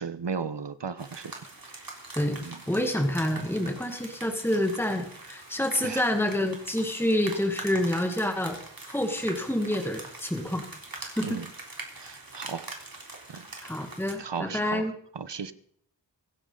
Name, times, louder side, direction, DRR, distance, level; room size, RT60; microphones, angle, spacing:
voice 1, 0.0-1.4 1.7-1.9 2.4-2.6 5.8-6.2 11.2-11.5 11.9-12.7 13.3-13.5 14.2-15.5, right 5 dB, 70° right, 13 dB, 1.1 m, -36 dB
sound 1, 1.0-14.1, right 2 dB, 50° right, 3.7 m, -43 dB
voice 2, 2.7-8.6 8.9-10.6 11.2-11.4 13.6-14.9, left 1 dB, 5° left, 4 dB, 2.0 m, -28 dB
24.5 x 9.9 x 4.0 m, 0.63 s
wide cardioid pair, 55°, 44 cm